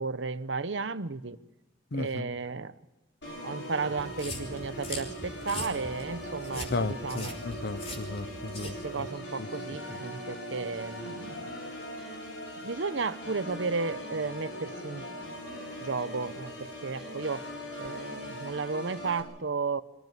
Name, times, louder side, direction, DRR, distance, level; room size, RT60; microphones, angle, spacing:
voice 1, 0.0-1.4 1.9-2.7 3.4-7.3 8.6-11.5 12.6-15.1 15.8-17.4 17.8-19.8, right 4 dB, 90° right, 0.9 m, -33 dB
voice 2, 1.9-2.3 6.5-9.1 9.4-9.5, left 3 dB, 60° left, 0.8 m, -35 dB
Organ, 3.2-19.2, equal, 85° left, 6.4 m, -40 dB
sound 1, 4.0-9.1, left 2 dB, 35° left, 3.8 m, -42 dB
23.5 x 15.0 x 8.3 m
head